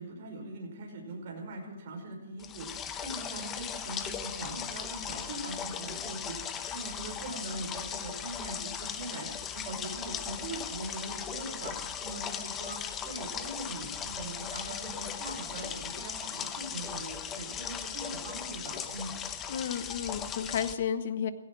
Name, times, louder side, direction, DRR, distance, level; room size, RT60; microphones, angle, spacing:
voice 1, 0.0-9.3 9.5-11.7 12.0-19.1, right 2 dB, 40° right, 0 dB, 5.4 m, -41 dB
sound 1, 2.4-20.7, left 8 dB, 15° left, 0.9 m, -38 dB
voice 2, 19.5-21.3, left 8 dB, 50° left, 12 dB, 1.2 m, -32 dB
16.5 x 16.5 x 4.8 m, 1.2 s
hypercardioid pair, 165°, 0 cm